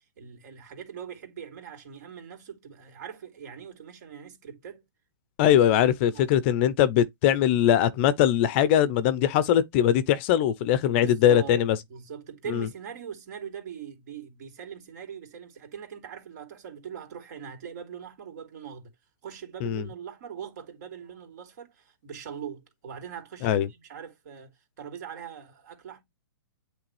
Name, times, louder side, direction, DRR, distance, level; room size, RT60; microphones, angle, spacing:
voice 1, 0.0-4.8 6.1-6.2 10.9-18.9 19.2-26.0, right 8 dB, 50° right, 3.1 m, -41 dB
voice 2, 5.4-11.8 12.5-12.7 19.6-19.8 23.4-23.7, left 10 dB, 35° left, 0.6 m, -21 dB
8.7 x 3.3 x 3.3 m
hypercardioid pair, 155°, 12 cm